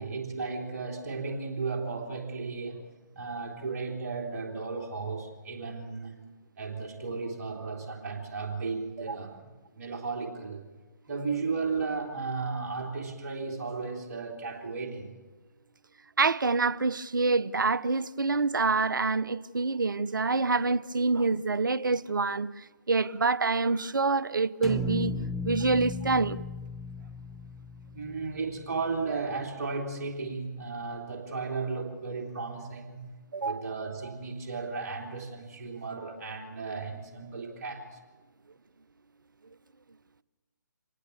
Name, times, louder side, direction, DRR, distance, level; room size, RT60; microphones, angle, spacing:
voice 1, 0.0-2.8 3.2-6.2 6.6-9.5 9.8-10.6 11.1-15.1 27.9-38.0, right 4 dB, 45° right, 3.4 m, -35 dB
voice 2, 16.2-25.1 25.4-26.4 33.3-33.7 35.7-35.8, right 3 dB, 75° right, 0.7 m, -26 dB
sound 1, 24.6-28.8, left 1 dB, ahead, 0.7 m, -36 dB
26.0 x 18.5 x 7.2 m
figure-of-eight pair, 135°, 11 cm